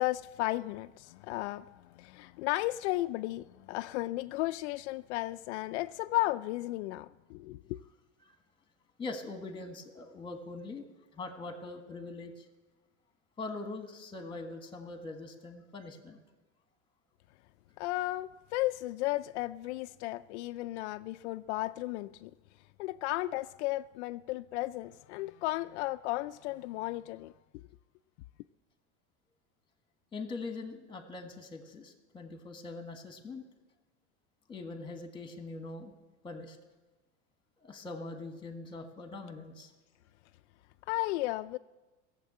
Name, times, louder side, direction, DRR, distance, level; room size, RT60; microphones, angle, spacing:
voice 1, 0.0-1.7 1.9-7.8 17.8-22.3 22.8-27.3 40.9-41.6, left 18 dB, 75° left, 10 dB, 0.5 m, -34 dB
voice 2, 9.0-10.8 11.1-12.4 13.4-16.2 30.1-33.4 34.5-35.9 36.2-36.6 37.6-39.7, left 3 dB, 15° left, 7 dB, 1.6 m, -42 dB
17.0 x 7.4 x 8.7 m, 1.2 s
supercardioid pair, 140°, 34 cm